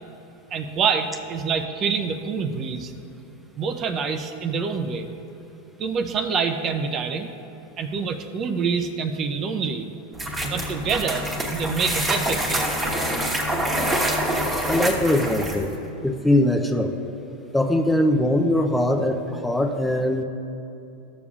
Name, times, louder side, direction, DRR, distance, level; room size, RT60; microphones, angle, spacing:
voice 1, 0.5-2.9 3.6-5.1 5.8-7.3 7.8-9.9 10.4-12.7, right 5 dB, 35° right, 6 dB, 0.6 m, -26 dB
sound 1, 10.1-15.7, right 1 dB, 15° right, 1.2 m, -25 dB
voice 2, 14.7-15.7 16.0-17.0 17.5-20.2, left 1 dB, 5° left, 3 dB, 0.6 m, -21 dB
13.5 x 7.0 x 2.4 m, 2.9 s
hypercardioid pair, 120°, 0 cm